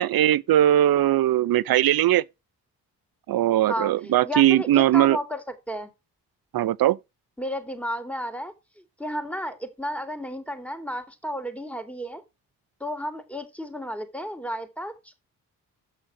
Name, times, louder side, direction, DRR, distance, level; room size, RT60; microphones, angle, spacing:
voice 1, 0.0-2.2 3.3-5.2 6.5-7.0, right 12 dB, 55° right, 0.6 m, -20 dB
voice 2, 3.7-5.9 7.4-12.2 12.8-15.1, equal, 5° left, 2.5 m, -33 dB
7.3 x 6.3 x 6.0 m
supercardioid pair, 45°, 42 cm